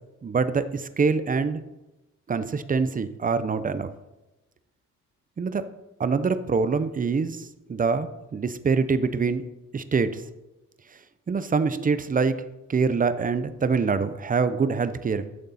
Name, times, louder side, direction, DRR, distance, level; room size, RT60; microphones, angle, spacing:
voice 1, 0.2-1.6 2.3-3.9 5.4-5.6 6.0-9.4 9.7-10.2 11.3-12.4 12.7-15.3, right 5 dB, 25° right, 12 dB, 0.7 m, -25 dB
12.0 x 6.6 x 4.2 m, 1.0 s
cardioid pair, 90°, 30 cm